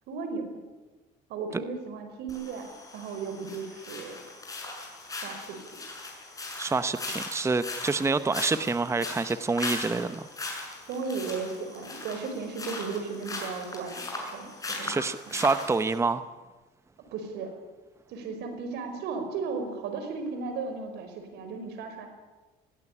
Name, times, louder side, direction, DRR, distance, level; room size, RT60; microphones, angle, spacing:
voice 1, 0.1-0.5 1.3-4.2 5.2-5.6 10.9-14.9 17.1-17.5 18.1-22.1, right 4 dB, 80° right, 7 dB, 5.2 m, -35 dB
sound 1, 2.3-16.0, left 2 dB, 20° left, 7.1 m, -39 dB
voice 2, 6.6-10.3 14.8-16.2, right 4 dB, 15° right, 12 dB, 0.8 m, -27 dB
21.0 x 17.0 x 9.9 m, 1.2 s
cardioid pair, 110°, 17 cm